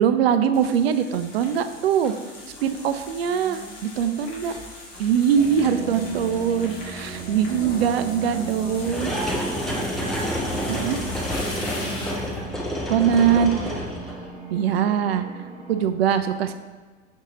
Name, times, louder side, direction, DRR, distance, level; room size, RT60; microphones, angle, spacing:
voice 1, 0.0-2.1 2.6-4.5 5.0-9.1 10.7-11.0 12.9-13.5 14.5-15.4 15.7-16.5, right 8 dB, 50° right, 10 dB, 0.5 m, -22 dB
sound 1, 0.5-12.4, left 2 dB, 40° left, 1.8 m, -40 dB
sound 2, 2.0-2.1 2.6-2.9 3.3-3.4 4.5-4.6 5.6-5.7 6.6-6.7 8.8-14.3, equal, ahead, 0.5 m, -29 dB
voice 2, 2.3-3.0 3.2-7.1 7.6-7.8 8.0-11.1 11.5-12.3 12.9-14.3, left 1 dB, 75° left, -3 dB, 2.0 m, -41 dB
sound 3, 5.3-15.9, right 3 dB, 15° right, 1.1 m, -39 dB
6.3 x 4.5 x 3.8 m, 1.4 s
figure-of-eight pair, 90°, 40 cm